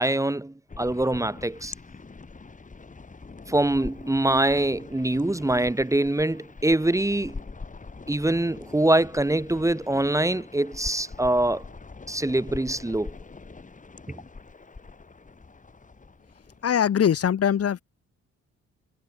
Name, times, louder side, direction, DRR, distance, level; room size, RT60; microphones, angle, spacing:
voice 1, 0.0-1.7 3.5-7.4 8.1-11.6 12.1-13.1, right 1 dB, 10° right, 1.8 m, -24 dB
sound 1, 0.7-17.3, left 4 dB, 25° left, 4.2 m, -43 dB
voice 2, 16.6-17.8, left 8 dB, 50° left, 1.8 m, -22 dB
cardioid pair, 90°, 30 cm